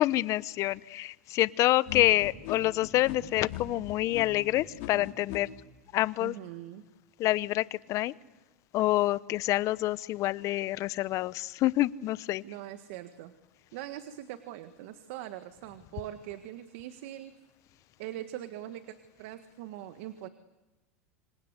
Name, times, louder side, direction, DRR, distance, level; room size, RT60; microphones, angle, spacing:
voice 1, 0.0-5.5 5.9-6.3 7.2-8.1 8.7-12.4, left 16 dB, 45° left, 18 dB, 0.9 m, -27 dB
sound 1, 1.9-5.4, left 13 dB, 65° left, 4.7 m, -40 dB
voice 2, 6.2-6.8 12.4-13.3 13.7-17.4 18.0-20.3, right 13 dB, 70° right, 9 dB, 1.7 m, -42 dB
26.0 x 26.0 x 8.2 m, 1.1 s
supercardioid pair, 110°, 7 cm